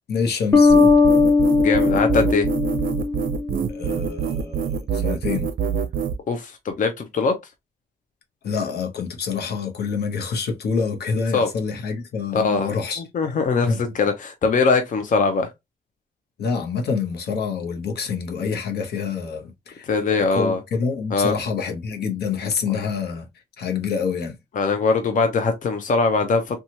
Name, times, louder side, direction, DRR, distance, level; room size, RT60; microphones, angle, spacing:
voice 1, 0.1-0.7 3.7-5.5 8.4-13.0 13.7-13.8 16.4-23.3 23.6-24.4, left 5 dB, 80° left, 0.8 m, -27 dB
sound 1, 0.5-3.9, left 4 dB, 15° left, 0.9 m, -18 dB
sound 2, 0.7-6.2, right 7 dB, 60° right, 0.5 m, -25 dB
voice 2, 1.6-2.5 6.3-7.3 11.3-11.5 12.3-12.8 13.1-15.5 19.9-20.6 21.1-21.3 24.6-26.6, left 4 dB, 50° left, 0.6 m, -21 dB
2.9 x 2.3 x 2.7 m
cardioid pair, 70°, 17 cm